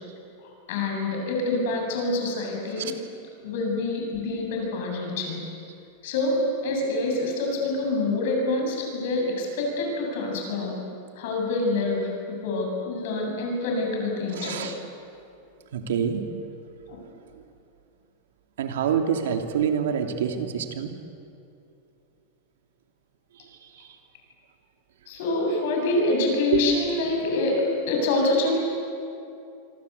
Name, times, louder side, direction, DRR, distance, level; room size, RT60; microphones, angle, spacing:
voice 1, 0.7-3.0 3.4-5.4 6.0-10.8 11.2-12.1 12.4-14.7 16.9-17.0 25.1-28.6, left 2 dB, 50° left, 1 dB, 7.8 m, -26 dB
voice 2, 14.4-14.7 15.7-16.2 18.6-20.9 26.5-26.6, right 8 dB, 80° right, 5 dB, 2.8 m, -26 dB
26.5 x 23.5 x 8.4 m, 2.6 s
supercardioid pair, 175°, 0 cm